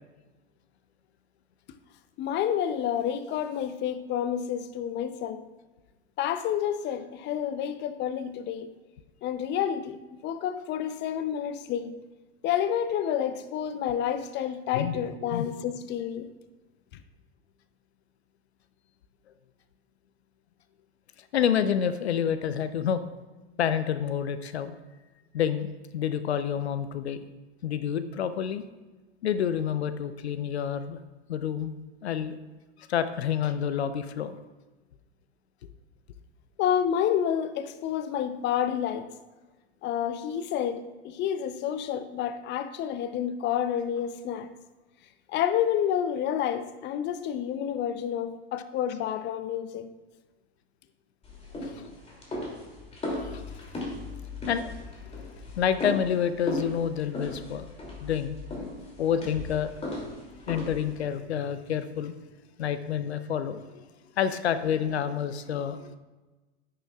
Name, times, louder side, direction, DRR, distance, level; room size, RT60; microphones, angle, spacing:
voice 1, 2.2-5.4 6.2-8.7 9.2-12.0 12.4-16.3 36.6-39.1 39.8-44.5 45.3-49.9, left 9 dB, 35° left, 11 dB, 0.6 m, -29 dB
voice 2, 21.3-23.0 23.6-24.7 25.3-27.2 27.6-28.6 29.2-31.0 31.3-31.7 32.0-32.4 32.9-34.4 51.6-51.9 53.1-53.4 54.5-57.7 58.0-58.4 59.0-59.8 60.5-62.1 62.6-63.8 64.2-66.0, left 8 dB, 80° left, 12 dB, 0.6 m, -28 dB
sound 1, 51.2-61.0, left 1 dB, 20° left, 2.7 m, -37 dB
10.5 x 9.9 x 2.4 m, 1.2 s
hypercardioid pair, 90°, 32 cm